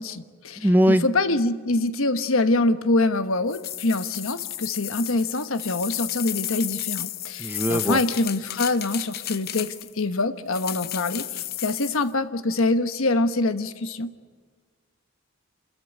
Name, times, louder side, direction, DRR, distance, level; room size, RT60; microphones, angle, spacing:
voice 1, 0.0-14.1, left 2 dB, 70° left, 10 dB, 1.2 m, -25 dB
voice 2, 0.6-1.0 7.4-8.0, equal, 10° right, 10 dB, 0.8 m, -20 dB
sound 1, 3.5-10.0 10.5-12.0, left 13 dB, 45° left, 0.7 m, -33 dB
27.5 x 14.0 x 9.6 m, 1.5 s
head